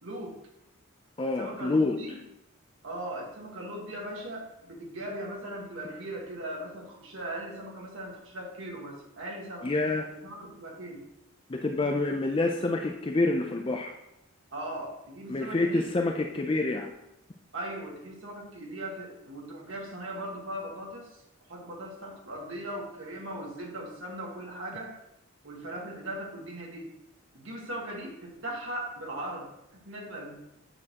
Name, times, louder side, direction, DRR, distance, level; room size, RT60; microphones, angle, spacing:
voice 1, 0.0-0.4 1.4-2.2 2.8-9.7 10.1-11.1 14.5-15.8 17.5-21.2 21.5-24.9 25.4-26.9 27.3-29.5 29.7-30.3, right 1 dB, 65° right, -2 dB, 1.5 m, -39 dB
voice 2, 1.2-2.0 9.6-10.1 11.5-14.0 15.3-16.9, left 2 dB, 25° left, 3 dB, 0.4 m, -27 dB
8.7 x 6.4 x 2.9 m, 0.85 s
head